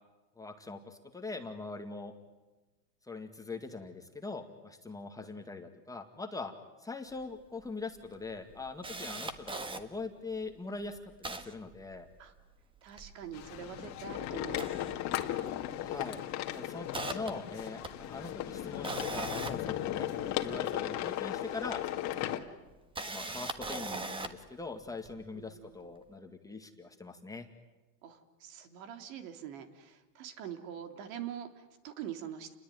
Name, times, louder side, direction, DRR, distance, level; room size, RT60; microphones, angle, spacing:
voice 1, 0.4-2.1 3.0-6.5 6.8-12.1 15.8-16.2 16.5-21.8 23.1-27.5, left 3 dB, 5° left, 4 dB, 2.0 m, -42 dB
Camera, 7.2-7.3 7.6-7.7 8.2-9.8 10.4-10.5 10.8-12.4 12.8-14.0 14.4-15.6 15.8-16.1 16.5-20.6 21.6-21.7 22.7-24.5 25.1-25.2, right 2 dB, 10° right, 1.6 m, -40 dB
voice 2, 12.8-14.8 25.3-25.9 28.0-32.5, right 9 dB, 60° right, 7 dB, 3.2 m, -44 dB
sound 1, 13.3-22.4, left 12 dB, 35° left, 2.1 m, -36 dB
29.5 x 21.5 x 9.4 m, 1.2 s
supercardioid pair, 130°, 46 cm